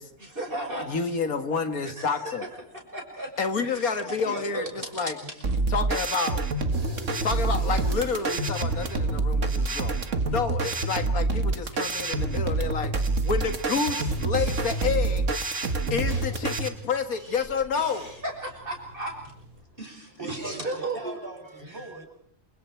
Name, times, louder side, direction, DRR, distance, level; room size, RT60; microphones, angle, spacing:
voice 1, 0.2-1.2 1.8-2.4 2.9-3.3 3.6-5.4 17.2-17.4 17.7-19.3 19.8-21.1 21.6-21.8, right 2 dB, 40° right, 2 dB, 6.3 m, -36 dB
voice 2, 0.8-2.4 3.4-5.2 5.7-6.4 7.2-9.9 10.3-13.0 13.2-15.3 15.9-18.1, left 5 dB, 85° left, 8 dB, 2.4 m, -29 dB
sound 1, 5.4-16.7, right 2 dB, 60° right, 2.0 m, -27 dB
sound 2, 6.7-19.6, right 2 dB, 75° right, 6.1 m, -46 dB
voice 3, 20.1-22.1, right 2 dB, 15° right, 1 dB, 7.2 m, -41 dB
28.0 x 27.0 x 4.7 m, 0.67 s
omnidirectional pair, 1.5 m